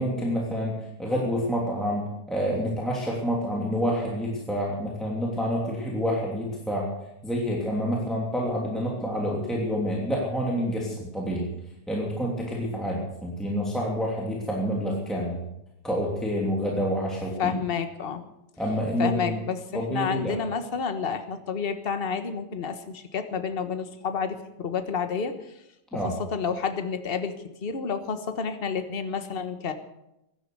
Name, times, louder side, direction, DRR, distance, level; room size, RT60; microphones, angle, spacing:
voice 1, 0.0-6.9 7.2-11.5 11.9-15.4 15.8-17.6 18.6-19.4 19.7-20.4 25.9-26.2, equal, ahead, -3 dB, 2.9 m, -28 dB
voice 2, 17.4-18.2 19.0-25.3 26.3-27.3 27.6-29.7, left 6 dB, 35° left, 8 dB, 1.4 m, -30 dB
16.0 x 12.0 x 6.7 m, 0.86 s
omnidirectional pair, 2.0 m